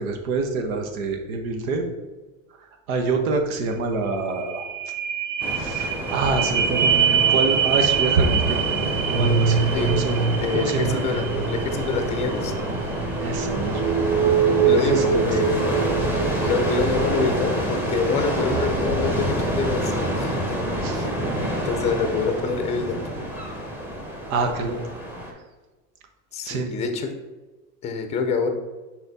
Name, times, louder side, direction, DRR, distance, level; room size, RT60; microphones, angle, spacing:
voice 1, 0.0-1.8 2.9-4.7 5.5-10.2 10.5-11.0 13.2-13.8 14.4-15.3 20.8-21.1 24.3-24.8 26.4-26.7, right 3 dB, 85° right, 5 dB, 1.2 m, -26 dB
sound 1, 3.7-3.8 4.1-20.0 20.5-20.6, right 7 dB, 65° right, 0.6 m, -24 dB
sound 2, 5.4-25.3, equal, 5° right, 0.9 m, -28 dB
voice 2, 10.4-12.5 14.4-15.9 16.4-20.6 20.9-21.2 21.6-23.0 26.3-27.1 27.8-28.5, left 4 dB, 15° left, 6 dB, 0.5 m, -26 dB
6.6 x 4.4 x 4.1 m, 1.2 s
supercardioid pair, 155°, 40 cm